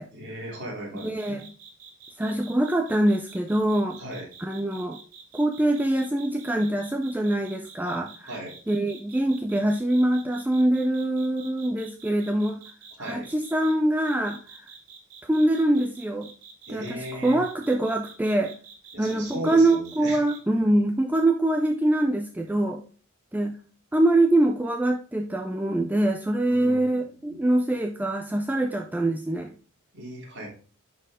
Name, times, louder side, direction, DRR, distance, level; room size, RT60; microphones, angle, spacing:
voice 1, 0.1-1.4 4.0-4.3 8.3-8.5 13.0-13.3 16.7-17.4 18.9-20.2 26.4-26.9 27.3-27.4 29.9-30.5, right 1 dB, 50° right, -2 dB, 3.0 m, -37 dB
voice 2, 1.0-1.5 2.2-4.0 4.4-5.0 5.3-8.3 8.7-12.6 13.0-14.7 15.2-16.3 16.7-18.5 19.0-22.8 23.3-23.5 23.9-29.5, right 1 dB, 10° right, 3 dB, 0.4 m, -24 dB
sound 1, 1.0-13.7 14.0-20.4, right 6 dB, 75° right, 1.9 m, -47 dB
10.0 x 4.5 x 3.6 m, 0.39 s
head